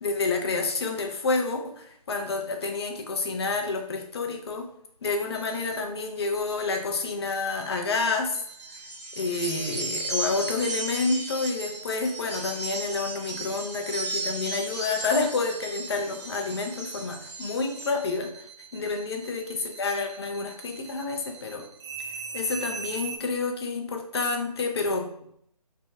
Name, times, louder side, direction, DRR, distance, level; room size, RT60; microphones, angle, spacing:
voice 1, 0.0-4.7 5.0-8.4 9.1-18.5 18.7-21.6 22.3-25.1, left 3 dB, 40° left, 3 dB, 0.5 m, -29 dB
sound 1, 5.3-5.8 6.3-6.8 7.3-7.8 8.3-8.8 9.3-9.8 10.3-10.8 11.3-11.8 12.3-12.8 13.3-23.2, right 6 dB, 45° right, 0.5 m, -42 dB
sound 2, 8.5-17.9, right 2 dB, 80° right, 0.8 m, -35 dB
3.4 x 2.1 x 2.6 m, 0.69 s
figure-of-eight pair, 145°, 20 cm